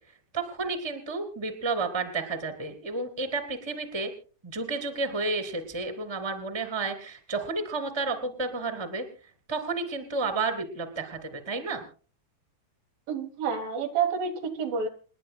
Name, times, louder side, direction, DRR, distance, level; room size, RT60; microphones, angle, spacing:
voice 1, 0.3-4.1 4.4-9.0 9.5-11.8, right 3 dB, 10° right, 7 dB, 2.1 m, -31 dB
voice 2, 13.1-14.9, right 6 dB, 65° right, 4 dB, 3.1 m, -29 dB
28.5 x 11.5 x 2.2 m, 0.38 s
omnidirectional pair, 4.6 m